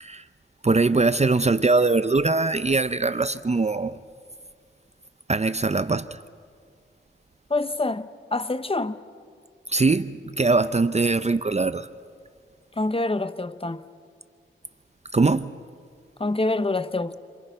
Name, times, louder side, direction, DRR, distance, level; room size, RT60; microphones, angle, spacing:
voice 1, 0.6-4.0 5.3-6.2 9.7-11.9 15.1-15.6, right 3 dB, 30° right, 0.6 m, -22 dB
voice 2, 7.5-9.0 12.8-13.8 16.2-17.2, left 2 dB, 25° left, 0.9 m, -26 dB
28.5 x 27.5 x 5.6 m
wide cardioid pair, 60°, 21 cm